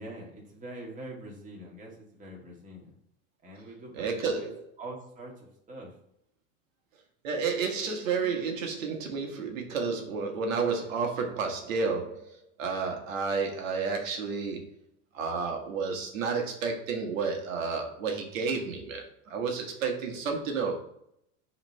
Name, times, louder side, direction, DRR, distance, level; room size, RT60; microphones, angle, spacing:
voice 1, 0.0-2.9 3.4-4.5 4.8-5.9, right 1 dB, 20° right, -1 dB, 1.9 m, -44 dB
voice 2, 3.9-4.6 7.2-14.6 15.1-20.8, right 5 dB, 70° right, 2 dB, 1.4 m, -31 dB
5.7 x 3.3 x 5.5 m, 0.75 s
hypercardioid pair, 120°, 40 cm